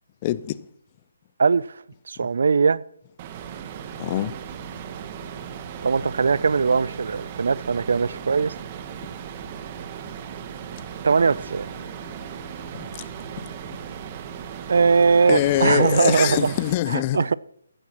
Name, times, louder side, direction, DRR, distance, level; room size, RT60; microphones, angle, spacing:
voice 1, 0.2-0.6 4.0-4.3 13.0-13.1 15.3-17.2, left 14 dB, 30° left, 0.5 m, -23 dB
voice 2, 1.4-2.8 5.8-8.5 11.0-11.7 14.7-16.5 16.9-17.4, right 5 dB, 65° right, 0.4 m, -20 dB
sound 1, 3.2-16.7, right 8 dB, 30° right, 1.0 m, -37 dB
Bowed string instrument, 10.7-15.0, right 1 dB, 10° right, 5.7 m, -50 dB
15.0 x 13.0 x 3.0 m
figure-of-eight pair, 150°, 0 cm